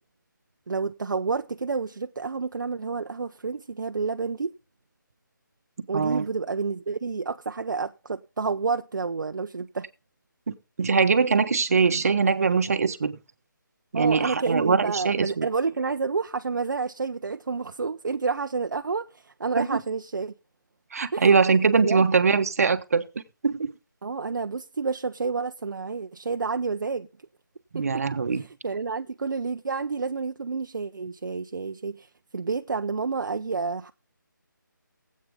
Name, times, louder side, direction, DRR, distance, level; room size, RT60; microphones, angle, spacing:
voice 1, 0.7-4.5 5.9-9.9 13.9-20.3 21.1-21.4 21.7-22.1 24.0-27.1 27.7-28.0 28.3-32.1 32.3-33.9, right 4 dB, 65° right, 0.7 m, -29 dB
voice 2, 5.9-6.2 10.5-13.2 13.9-15.5 19.6-19.8 20.9-23.1 23.4-23.7 27.7-28.4, right 5 dB, 45° right, 1.2 m, -22 dB
17.0 x 8.5 x 3.5 m
figure-of-eight pair, 170°, 11 cm